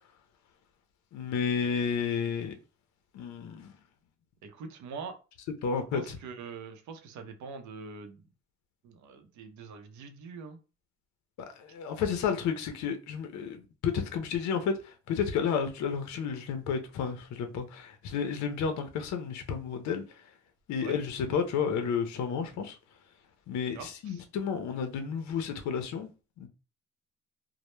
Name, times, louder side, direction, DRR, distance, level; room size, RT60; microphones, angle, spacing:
voice 1, 1.1-2.5 3.1-3.7 5.6-6.2 11.6-20.0 20.7-22.8 23.5-26.1 26.4-26.5, left 6 dB, 70° left, 0.5 m, -31 dB
voice 2, 4.4-5.2 5.9-8.2 8.8-10.6 20.8-21.0 23.7-24.2, right 5 dB, 70° right, 0.6 m, -43 dB
2.0 x 2.0 x 3.0 m
cardioid pair, 90°, 30 cm